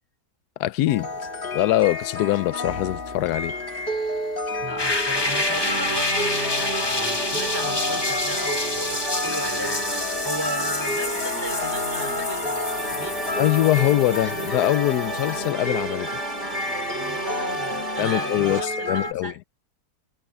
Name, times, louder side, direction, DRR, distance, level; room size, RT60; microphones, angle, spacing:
voice 1, 0.6-1.1 1.5-3.5 13.4-16.2 18.0-19.3, left 15 dB, 90° left, 1.2 m, -23 dB
sound 1, 0.9-19.1, left 2 dB, 35° left, 1.8 m, -31 dB
voice 2, 4.6-13.2 16.9-19.4, equal, 15° right, 4.2 m, -35 dB
sound 2, 4.8-15.5, left 2 dB, 20° left, 1.0 m, -29 dB
sound 3, 5.1-18.6, right 2 dB, 45° right, 3.5 m, -32 dB
omnidirectional pair, 1.6 m